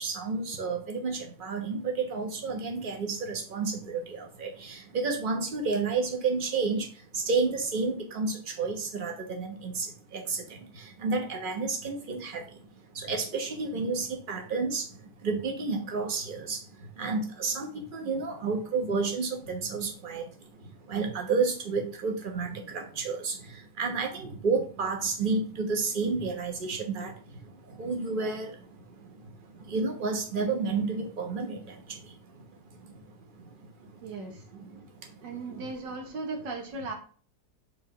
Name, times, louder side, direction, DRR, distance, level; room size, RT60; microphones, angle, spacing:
voice 1, 0.0-34.1 34.5-35.7, right 4 dB, 35° right, 3 dB, 1.2 m, -31 dB
voice 2, 34.0-34.4 35.2-36.9, right 3 dB, 85° right, 3 dB, 2.0 m, -37 dB
5.0 x 3.7 x 5.5 m, 0.42 s
omnidirectional pair, 1.9 m